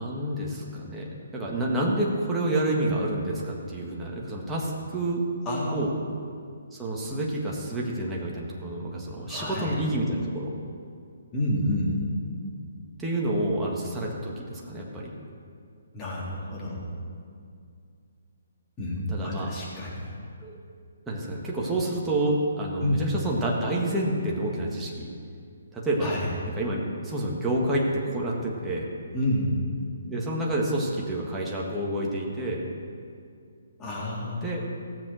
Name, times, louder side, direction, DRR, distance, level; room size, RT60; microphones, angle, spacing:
voice 1, 0.0-5.2 5.7-5.9 6.7-10.5 13.0-15.1 19.1-19.5 20.4-20.6 21.1-25.1 25.7-26.2 26.6-28.9 30.1-32.7 34.4-34.6, right 1 dB, 10° right, -4 dB, 1.8 m, -28 dB
voice 2, 5.5-6.1 9.3-9.7 11.3-11.9 15.9-16.8 18.8-20.1 22.8-23.1 26.0-26.3 29.1-29.5 33.8-34.5, left 1 dB, 20° left, -6 dB, 3.7 m, -29 dB
16.5 x 7.3 x 6.3 m, 2.3 s
hypercardioid pair, 145°, 0 cm